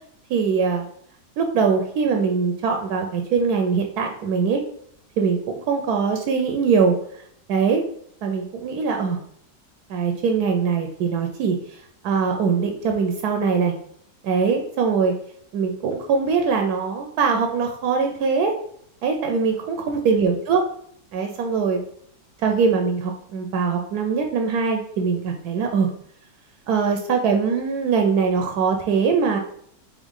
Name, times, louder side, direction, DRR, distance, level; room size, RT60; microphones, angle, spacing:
voice 1, 0.3-0.8 1.4-4.6 5.2-5.4 5.7-7.0 7.5-7.8 8.2-9.2 9.9-11.6 12.0-13.7 14.2-15.1 15.5-18.5 19.0-20.6 21.1-21.8 22.4-25.9 26.7-29.4, right 5 dB, 75° right, 4 dB, 1.1 m, -22 dB
3.7 x 3.6 x 3.7 m, 0.66 s
omnidirectional pair, 1.8 m